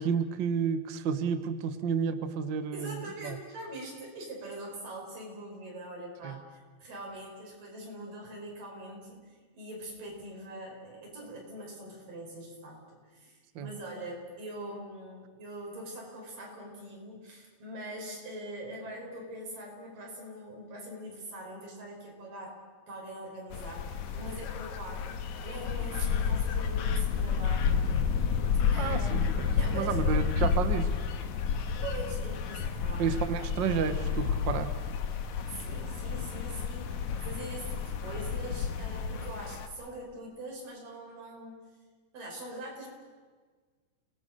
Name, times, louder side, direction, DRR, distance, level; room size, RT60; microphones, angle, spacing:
voice 1, 0.0-3.4 6.2-6.4 13.5-13.7 28.8-30.9 33.0-34.7, right 6 dB, 85° right, 10 dB, 1.0 m, -31 dB
voice 2, 2.7-22.6 22.9-27.8 28.7-29.1 29.6-30.0 31.8-33.2 35.5-41.7 42.1-42.9, right 1 dB, 60° right, -1 dB, 7.1 m, -43 dB
sound 1, 23.5-39.7, left 6 dB, 60° left, 2.5 m, -30 dB
29.5 x 19.5 x 6.7 m, 1.5 s
omnidirectional pair, 4.3 m